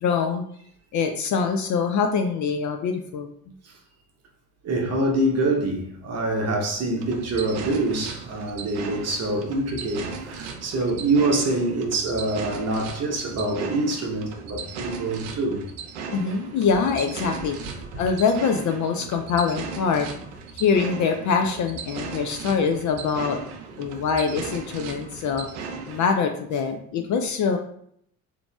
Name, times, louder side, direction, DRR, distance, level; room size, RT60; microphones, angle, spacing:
voice 1, 0.0-0.4 0.9-3.3 16.1-17.6 18.0-20.1 20.5-23.4 23.8-25.5 25.9-27.6, left 5 dB, 45° left, 0.4 m, -24 dB
voice 2, 4.6-15.6 18.0-18.1 24.9-25.0 27.0-27.1, right 2 dB, 35° right, 0.8 m, -25 dB
sound 1, 7.0-26.1, right 5 dB, 70° right, 0.6 m, -37 dB
2.9 x 2.5 x 2.2 m
hypercardioid pair, 55°, 44 cm